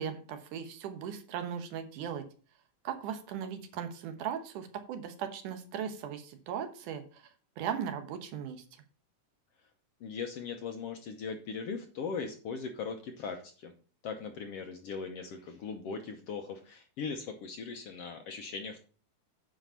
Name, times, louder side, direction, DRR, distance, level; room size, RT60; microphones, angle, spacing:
voice 1, 0.0-2.2 2.8-7.2 7.6-8.6, right 8 dB, 80° right, 8 dB, 2.6 m, -38 dB
voice 2, 10.0-13.7 14.0-18.8, left 5 dB, 70° left, 5 dB, 1.5 m, -39 dB
9.6 x 5.0 x 5.7 m, 0.40 s
omnidirectional pair, 3.6 m